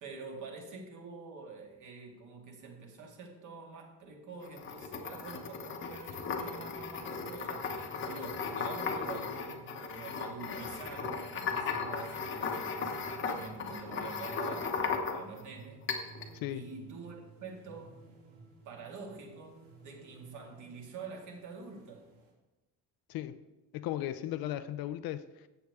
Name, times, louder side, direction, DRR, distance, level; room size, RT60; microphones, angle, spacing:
voice 1, 0.0-12.8 13.2-15.9 16.5-18.0 18.7-22.1, right 4 dB, 45° right, 2.0 m, -47 dB
sound 1, 4.4-15.4 15.9-16.3, left 5 dB, 30° left, 1.0 m, -36 dB
sound 2, 6.8-22.3, right 4 dB, 85° right, 2.8 m, -55 dB
voice 2, 16.3-16.7 23.1-23.4 23.7-25.5, left 13 dB, 60° left, 0.6 m, -36 dB
14.0 x 8.1 x 3.5 m
cardioid pair, 175°, 42 cm